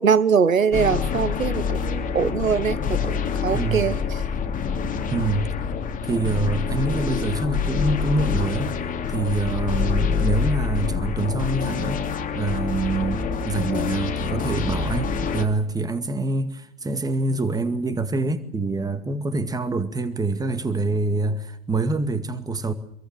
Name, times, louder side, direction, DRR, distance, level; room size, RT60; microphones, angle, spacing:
voice 1, 0.0-3.2 3.4-4.0, right 6 dB, 75° right, 1.3 m, -22 dB
sound 1, 0.7-15.5, left 6 dB, 20° left, 3.0 m, -26 dB
voice 2, 3.4-3.9 5.1-5.5 6.0-8.8 9.1-12.0 12.3-22.7, right 2 dB, 10° right, 2.1 m, -25 dB
26.5 x 23.0 x 6.4 m
figure-of-eight pair, 95°, 40 cm